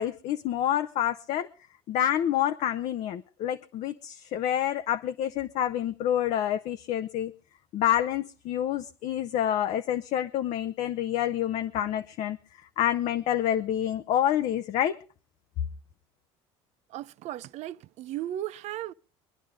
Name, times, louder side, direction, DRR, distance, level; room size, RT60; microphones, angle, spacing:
voice 1, 0.0-1.5 1.9-7.3 7.7-12.4 12.8-15.0, left 11 dB, 60° left, 0.9 m, -28 dB
voice 2, 16.9-18.9, right 13 dB, 60° right, 0.6 m, -36 dB
24.5 x 10.0 x 3.6 m
supercardioid pair, 90°, 13 cm